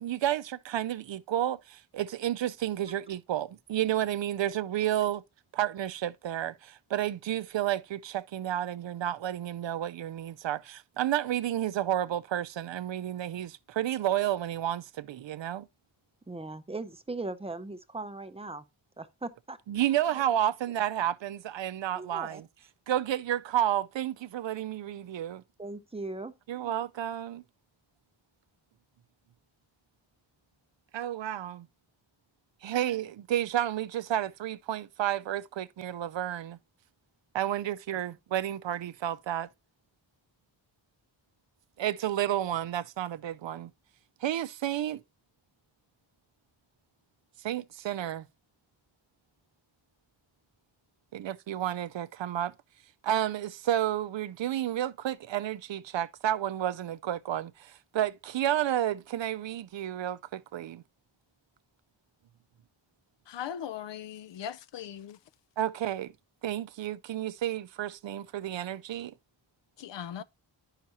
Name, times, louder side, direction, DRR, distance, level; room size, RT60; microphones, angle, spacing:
voice 1, 0.0-5.2 5.5-15.7 19.7-22.4 22.9-25.4 26.5-27.4 30.9-31.6 32.6-36.6 37.3-39.5 41.8-43.7 44.2-45.0 47.4-48.3 51.1-52.5 53.0-60.8 65.6-66.1 66.4-69.1, right 12 dB, 70° right, 0.5 m, -31 dB
voice 2, 16.3-18.7 19.0-19.6 20.1-20.2 21.9-22.4 25.6-26.7, right 2 dB, 15° right, 0.5 m, -39 dB
voice 3, 63.3-65.2 69.8-70.2, left 9 dB, 65° left, 0.5 m, -39 dB
11.0 x 5.8 x 2.8 m
wide cardioid pair, 165°, 47 cm